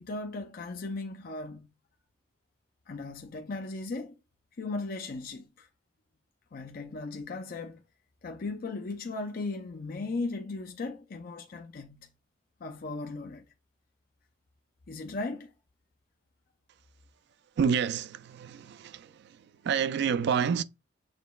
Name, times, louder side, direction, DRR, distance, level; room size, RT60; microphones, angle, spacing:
voice 1, 0.0-1.7 2.9-4.2 4.6-5.7 6.5-7.8 8.2-12.1 12.6-13.4 14.9-15.5, left 3 dB, 50° left, 0.5 m, -37 dB
voice 2, 17.6-20.6, right 7 dB, 60° right, 0.3 m, -29 dB
6.5 x 2.9 x 2.2 m
head